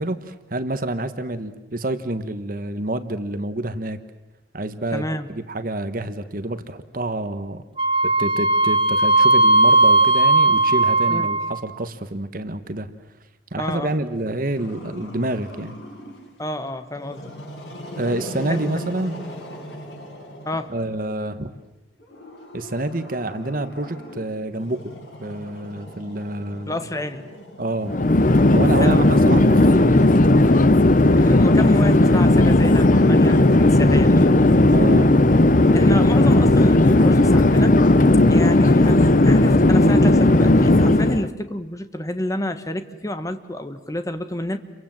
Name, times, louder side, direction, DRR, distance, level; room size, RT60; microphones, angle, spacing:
voice 1, 0.0-4.0 4.5-5.0 5.3-7.6 8.0-12.9 13.5-15.8 18.0-19.2 20.7-21.5 22.5-24.9 25.2-26.8 27.6-28.0 28.5-30.4 34.7-35.1, right 1 dB, 50° right, 10 dB, 1.3 m, -28 dB
voice 2, 4.9-5.3 11.1-11.3 13.6-13.9 16.4-17.3 20.4-20.7 26.6-27.3 28.8-29.1 31.1-34.3 35.7-37.8 38.3-44.6, left 1 dB, 20° left, 9 dB, 1.4 m, -29 dB
Wind instrument woodwind instrument, 7.8-11.7, right 2 dB, 30° right, 1.4 m, -17 dB
Growling, 14.6-16.3 16.9-21.0 22.0-28.5, left 1 dB, 80° left, 7.5 m, -39 dB
Chatter / Fixed-wing aircraft airplane, 27.9-41.3, left 2 dB, 45° left, 0.9 m, -15 dB
29.5 x 23.5 x 7.7 m, 1.0 s
head